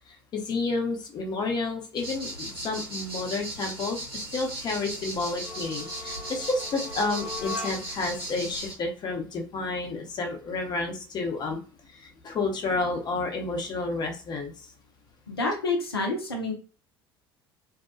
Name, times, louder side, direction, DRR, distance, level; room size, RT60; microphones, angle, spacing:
voice 1, 0.1-11.6 11.9-14.7, left 3 dB, 35° left, 2 dB, 0.7 m, -30 dB
sound 1, 2.0-8.7, right 1 dB, 85° right, 1.2 m, -37 dB
sound 2, 5.4-8.1, left 2 dB, 10° right, 0.5 m, -39 dB
voice 2, 15.3-16.5, left 2 dB, 85° left, 0 dB, 0.5 m, -28 dB
2.6 x 2.2 x 2.4 m, 0.36 s
figure-of-eight pair, 65°, 12 cm